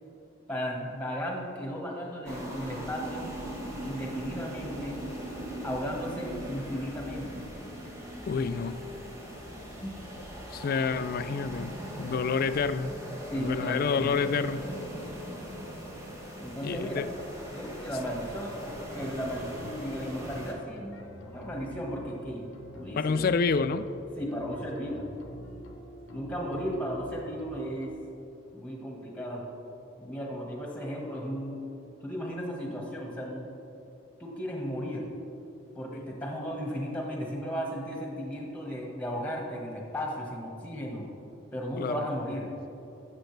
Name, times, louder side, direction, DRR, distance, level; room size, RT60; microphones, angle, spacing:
voice 1, 0.5-3.3 3.8-5.0 5.6-7.5 9.8-9.9 13.3-14.2 16.4-17.0 17.5-23.3 24.1-25.1 26.1-27.9 28.5-29.5 30.0-31.6 32.0-33.5 34.2-35.1 35.7-41.1 41.5-42.5, equal, 5° left, -1 dB, 1.5 m, -35 dB
sound 1, 2.3-20.5, equal, 15° right, 1.3 m, -40 dB
voice 2, 8.3-8.8 10.5-12.9 13.3-14.6 16.6-17.1 23.0-23.9 35.9-36.0 36.8-36.9 41.8-42.0, left 5 dB, 45° left, 13 dB, 0.3 m, -28 dB
sound 2, 19.0-27.9, left 1 dB, 70° left, 0.9 m, -47 dB
13.0 x 7.7 x 3.3 m, 3.0 s
head